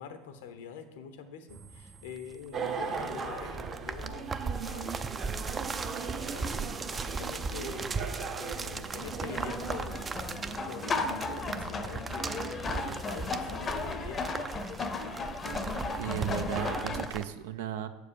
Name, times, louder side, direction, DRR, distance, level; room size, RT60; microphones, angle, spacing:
voice 1, 0.0-4.3 4.6-5.1 6.3-7.9 8.4-10.0 10.6-14.4, left 6 dB, 85° left, 9 dB, 0.9 m, -45 dB
sound 1, 1.5-17.2, right 4 dB, 20° right, 0.4 m, -38 dB
sound 2, 2.5-16.9, right 5 dB, 40° right, 0.9 m, -40 dB
sound 3, 9.0-17.1, left 4 dB, 30° left, 0.7 m, -35 dB
voice 2, 16.0-17.9, right 11 dB, 85° right, 10 dB, 0.6 m, -35 dB
6.9 x 4.8 x 6.9 m, 1.1 s
supercardioid pair, 110°, 0 cm